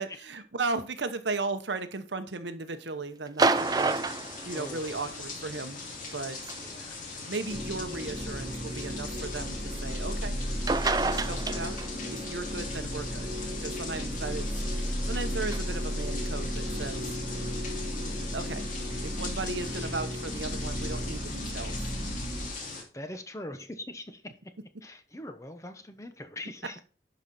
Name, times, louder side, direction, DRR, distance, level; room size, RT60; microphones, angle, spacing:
voice 1, 0.0-5.8 6.1-6.5 7.3-10.4 11.0-11.8 12.0-13.3 13.6-17.1 18.3-18.7 19.0-21.9, right 3 dB, 80° right, 1.0 m, -36 dB
sound 1, 3.3-5.2 6.5-6.6 7.5-7.6 10.4-10.5 10.7-12.1 15.5-15.6, right 3 dB, 20° right, 0.4 m, -28 dB
sound 2, 3.5-22.8, left 3 dB, 45° left, 2.6 m, -40 dB
voice 2, 4.5-5.2 6.6-7.0 11.5-11.7 18.9-19.0 22.9-24.4 24.8-26.8, left 1 dB, 15° left, 0.9 m, -42 dB
sound 3, 7.5-22.5, equal, ahead, 2.1 m, -34 dB
11.0 x 5.3 x 4.2 m
head